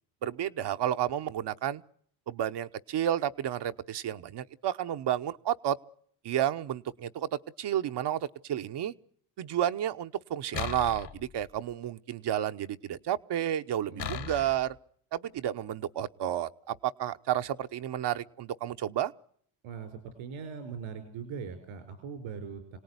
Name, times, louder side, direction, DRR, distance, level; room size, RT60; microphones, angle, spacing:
voice 1, 0.2-1.8 2.3-5.8 6.2-8.9 9.4-14.7 15.1-19.1, right 11 dB, 60° right, 10 dB, 1.0 m, -31 dB
Short twangs cleaned, 10.5-11.7 14.0-14.8, left 9 dB, 60° left, 1.9 m, -38 dB
voice 2, 13.9-14.3 19.6-22.8, right 6 dB, 90° right, 7 dB, 4.7 m, -40 dB
27.0 x 18.0 x 9.7 m, 0.65 s
cardioid pair, 95°, 47 cm